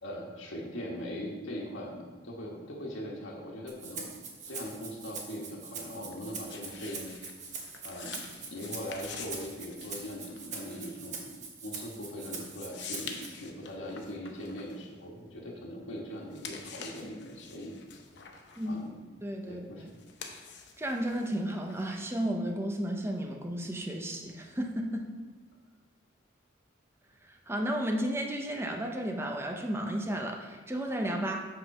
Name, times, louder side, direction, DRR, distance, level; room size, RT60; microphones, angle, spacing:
voice 1, 0.0-4.1 4.5-7.1 7.8-8.3 8.5-17.8 18.6-19.0 19.4-19.8, equal, 90° left, -2 dB, 1.3 m, -41 dB
Rattle (instrument), 3.7-13.3, right 5 dB, 40° right, 1.0 m, -43 dB
sound 1, 4.2-15.8 16.1-22.2, left 6 dB, 60° left, 0.8 m, -48 dB
voice 2, 19.2-19.9 20.8-25.1 27.2-31.4, right 1 dB, 15° right, 2 dB, 0.6 m, -33 dB
8.0 x 3.8 x 5.9 m, 1.4 s
head